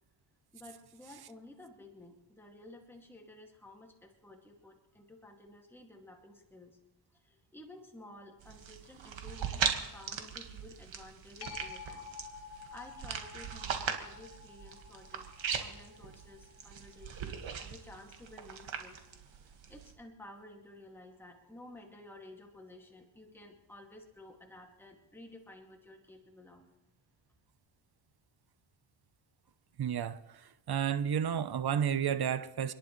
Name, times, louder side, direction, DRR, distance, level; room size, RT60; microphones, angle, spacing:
voice 1, 0.5-6.8 7.1-19.0 19.3-26.6, left 1 dB, 5° left, 0 dB, 2.4 m, -53 dB
sound 1, 8.4-19.9, right 7 dB, 80° right, 1.9 m, -39 dB
sound 2, 11.4-18.6 24.1-24.2, left 6 dB, 60° left, 2.3 m, -51 dB
voice 2, 29.8-30.4 30.7-32.7, right 8 dB, 55° right, 12 dB, 0.9 m, -31 dB
29.0 x 10.5 x 3.3 m, 0.98 s
cardioid pair, 70°, 45 cm